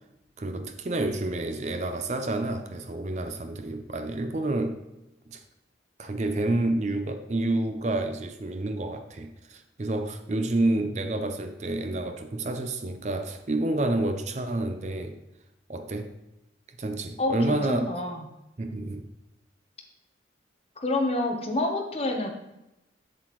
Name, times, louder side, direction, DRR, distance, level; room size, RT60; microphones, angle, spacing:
voice 1, 0.4-4.8 5.3-5.4 6.0-15.2 15.7-16.1 16.8-18.0 18.6-19.1, right 2 dB, 40° right, 7 dB, 0.5 m, -29 dB
voice 2, 17.2-18.2 20.8-22.3, left 2 dB, 35° left, 2 dB, 1.0 m, -28 dB
7.7 x 7.5 x 3.1 m, 0.90 s
head